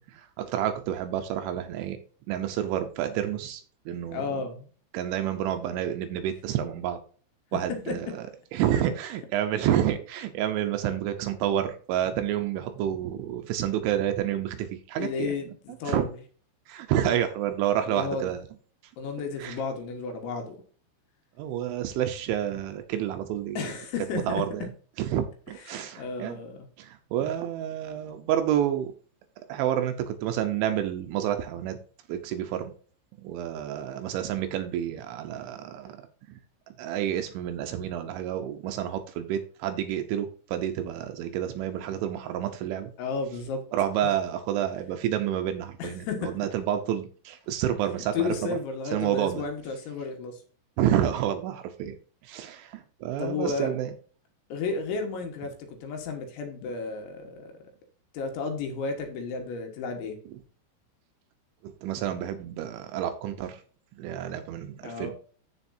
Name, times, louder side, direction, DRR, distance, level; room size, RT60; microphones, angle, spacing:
voice 1, 0.1-2.0 2.3-4.4 4.9-7.0 7.5-15.3 15.8-16.1 16.7-18.5 19.4-19.6 21.4-23.7 24.1-24.7 25.0-26.4 26.8-28.9 29.5-31.8 32.1-32.7 33.2-36.0 36.8-42.9 43.7-48.6 48.9-49.4 50.8-52.0 52.2-53.9 61.6-63.6 64.0-65.1, right 10 dB, 80° right, 7 dB, 3.0 m, -29 dB
voice 2, 4.1-4.7 7.9-8.0 15.0-16.1 17.9-18.3 19.0-20.6 23.6-24.4 25.7-26.6 43.0-43.6 45.8-46.4 48.1-50.4 53.2-53.7 54.5-57.5 58.1-60.2 64.8-65.1, left 4 dB, 70° left, 4 dB, 3.5 m, -33 dB
14.0 x 5.1 x 2.7 m, 0.41 s
omnidirectional pair, 5.9 m